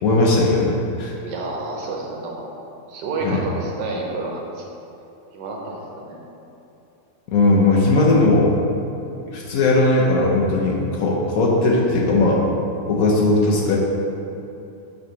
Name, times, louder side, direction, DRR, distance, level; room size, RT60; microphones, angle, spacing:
voice 1, 0.0-1.1 3.2-3.4 7.3-8.5 9.3-12.4 12.9-13.8, left 2 dB, 65° left, -3 dB, 1.0 m, -18 dB
voice 2, 1.2-2.5 2.9-4.6 5.3-6.2, right 3 dB, 75° right, -1 dB, 1.4 m, -29 dB
5.0 x 4.1 x 4.7 m, 2.9 s
omnidirectional pair, 1.9 m